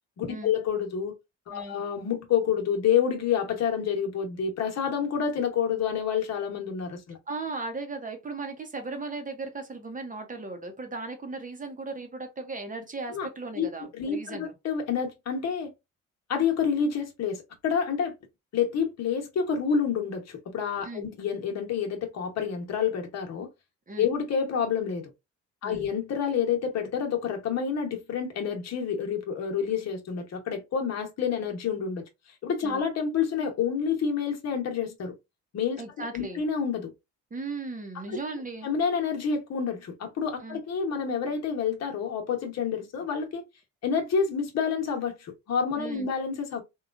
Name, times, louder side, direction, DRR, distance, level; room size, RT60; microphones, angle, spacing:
voice 1, 0.2-1.1 1.5-7.2 13.1-13.3 13.6-15.7 16.3-18.1 18.5-23.5 24.0-25.1 25.6-32.0 32.4-35.1 35.5-36.9 38.6-43.4 43.8-46.6, left 7 dB, 60° left, 1.0 m, -28 dB
voice 2, 7.3-14.5 20.8-21.1 23.9-24.1 25.6-25.9 32.6-32.8 35.8-36.4 37.3-38.7 40.4-40.6 45.8-46.1, right 3 dB, 25° right, 0.7 m, -37 dB
3.0 x 2.3 x 2.4 m
cardioid pair, 90°, 30 cm